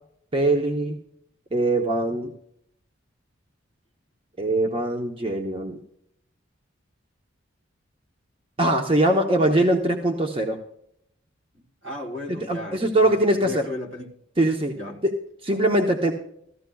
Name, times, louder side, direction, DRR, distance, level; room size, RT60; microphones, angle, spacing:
voice 1, 0.3-1.0 1.5-2.3 4.4-5.8 8.6-10.6 12.5-13.6 14.4-14.8 15.0-15.1 15.4-16.1, right 1 dB, 25° right, 0.9 m, -22 dB
voice 2, 11.8-13.1 13.3-14.1 14.7-15.0, left 2 dB, 70° right, 2.4 m, -34 dB
16.5 x 14.0 x 2.3 m
head